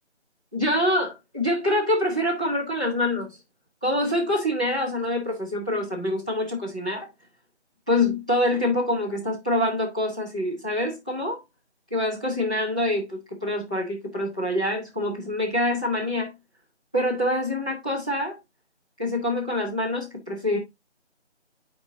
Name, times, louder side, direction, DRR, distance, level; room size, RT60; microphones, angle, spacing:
voice 1, 0.5-3.3 3.8-7.1 7.9-11.4 11.9-16.3 16.9-18.4 19.0-20.6, left 1 dB, 5° left, 0.8 m, -25 dB
10.5 x 4.5 x 2.6 m
figure-of-eight pair, 160°, 35 cm